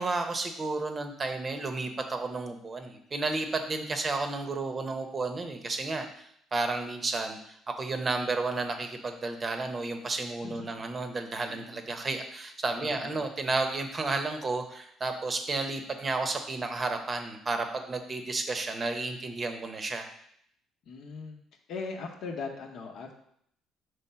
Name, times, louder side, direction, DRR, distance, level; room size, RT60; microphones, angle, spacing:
voice 1, 0.0-6.2 6.5-20.0, right 3 dB, 30° right, 6 dB, 0.8 m, -32 dB
voice 2, 11.5-12.0 12.7-13.3 20.9-21.4 21.7-23.2, left 4 dB, 65° left, 3 dB, 1.0 m, -40 dB
5.4 x 3.4 x 5.6 m, 0.69 s
cardioid pair, 120°, 0 cm